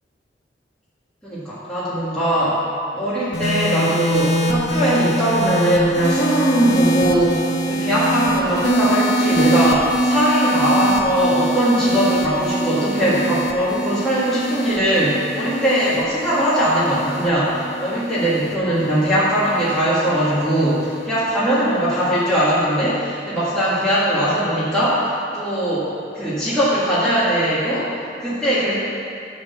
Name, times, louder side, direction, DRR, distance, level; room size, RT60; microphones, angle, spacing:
voice 1, 1.2-2.6 2.9-27.9 28.2-28.7, equal, 5° left, -11 dB, 1.6 m, -20 dB
sound 1, 3.3-19.8 20.7-21.1, right 1 dB, 80° left, 1.1 m, -23 dB
12.0 x 4.1 x 7.0 m, 2.5 s
head